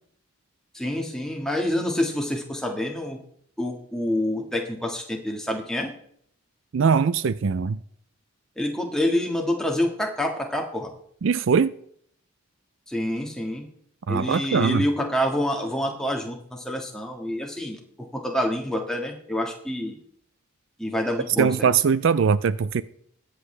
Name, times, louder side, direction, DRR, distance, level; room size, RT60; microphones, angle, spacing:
voice 1, 0.7-3.2 3.6-5.9 8.6-10.9 12.9-13.7 14.1-20.0 20.8-21.7, left 1 dB, 5° left, 1.6 m, -27 dB
voice 2, 6.7-7.8 11.2-11.7 14.1-14.8 21.4-22.8, right 6 dB, 65° right, 0.4 m, -21 dB
21.0 x 7.8 x 3.3 m
head